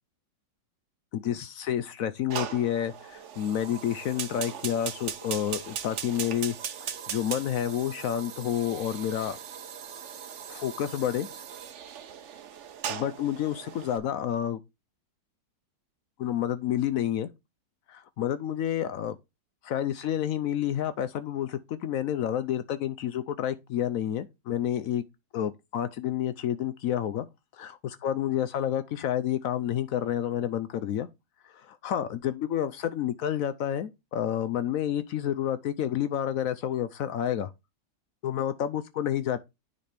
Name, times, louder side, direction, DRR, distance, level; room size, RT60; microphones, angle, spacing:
voice 1, 1.1-6.5 6.8-9.4 10.5-11.3 12.9-14.6 16.2-17.3 17.9-19.2 19.6-25.0 25.3-27.3 27.5-31.1 31.5-37.5 38.2-39.4, left 10 dB, 70° left, 0.8 m, -29 dB
Fire, 2.3-14.0, right 8 dB, 60° right, 0.8 m, -39 dB
9.8 x 4.2 x 3.4 m
omnidirectional pair, 1.9 m